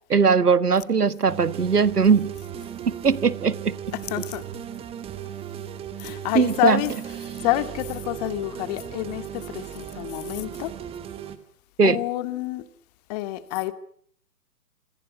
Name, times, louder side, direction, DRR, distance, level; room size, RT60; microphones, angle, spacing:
voice 1, 0.1-2.3 2.9-3.7 6.3-6.8 11.8-12.0, right 5 dB, 75° right, 1.6 m, -20 dB
sound 1, 1.3-11.4, right 10 dB, 10° right, 1.9 m, -36 dB
voice 2, 3.9-4.4 6.0-10.7 11.8-12.6 13.1-13.7, left 16 dB, 25° left, 2.1 m, -28 dB
27.5 x 26.0 x 6.2 m
figure-of-eight pair, 130°, 46 cm